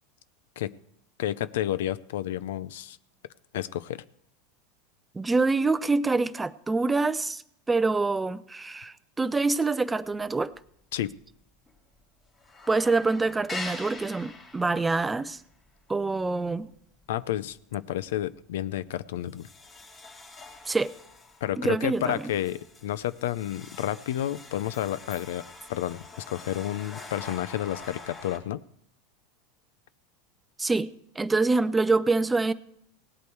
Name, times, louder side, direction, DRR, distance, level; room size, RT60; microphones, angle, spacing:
voice 1, 1.2-3.0 3.5-4.0 10.9-11.2 17.1-19.5 21.4-25.4 25.7-28.6, left 12 dB, 80° left, 0.5 m, -31 dB
voice 2, 5.1-7.4 7.7-10.5 12.7-15.4 15.9-16.7 20.7-20.9 21.6-22.2 30.6-32.5, right 3 dB, 15° right, 0.5 m, -26 dB
sound 1, 10.2-10.7 11.0-11.1 11.4-12.0 12.3-17.5 17.9-18.2 18.7-18.8 19.3-28.4, left 3 dB, 25° left, 2.5 m, -44 dB
17.5 x 8.3 x 4.7 m
supercardioid pair, 115°, 0 cm